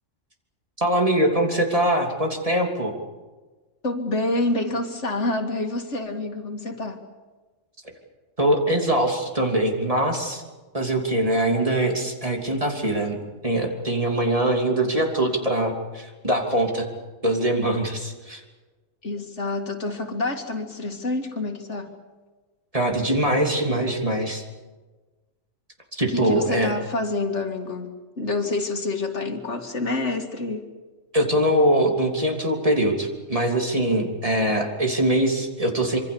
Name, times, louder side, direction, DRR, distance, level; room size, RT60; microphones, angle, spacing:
voice 1, 0.8-2.9 8.4-10.4 10.7-16.9 17.2-18.4 22.7-24.4 25.9-26.7 31.1-36.0, right 1 dB, 25° right, 2 dB, 3.2 m, -22 dB
voice 2, 3.8-7.0 19.0-21.9 26.1-30.7, left 2 dB, 65° left, 4 dB, 2.5 m, -27 dB
26.0 x 24.5 x 7.0 m, 1.3 s
omnidirectional pair, 1.3 m